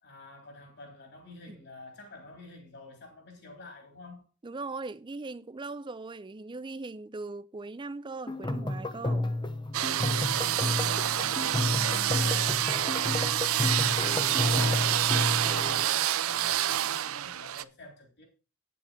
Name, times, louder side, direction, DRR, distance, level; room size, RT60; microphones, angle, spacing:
voice 1, 0.0-4.2 11.1-18.2, left 2 dB, 50° left, 3.6 m, -47 dB
voice 2, 4.4-9.4, right 3 dB, 20° right, 0.4 m, -39 dB
sound 1, 8.3-15.8, left 2 dB, 20° left, 0.8 m, -31 dB
sound 2, 9.7-17.6, right 12 dB, 70° right, 0.5 m, -28 dB
9.4 x 7.7 x 5.2 m
head